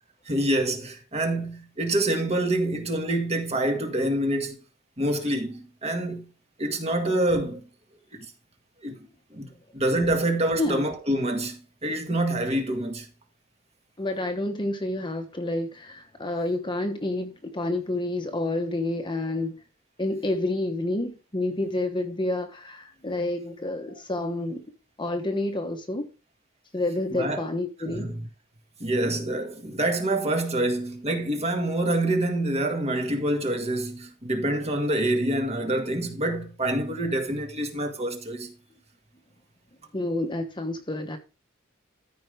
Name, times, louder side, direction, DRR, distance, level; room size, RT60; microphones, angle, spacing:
voice 1, 0.3-4.6 5.0-6.3 6.6-7.6 8.1-8.3 8.8-9.0 9.3-13.1 27.1-27.5 27.8-28.2 28.8-38.5, right 1 dB, 30° right, 1.8 m, -26 dB
voice 2, 14.0-19.6 20.0-24.6 25.0-26.1 26.7-28.1 39.9-41.2, left 2 dB, 25° left, 1.1 m, -29 dB
13.5 x 5.3 x 3.4 m
head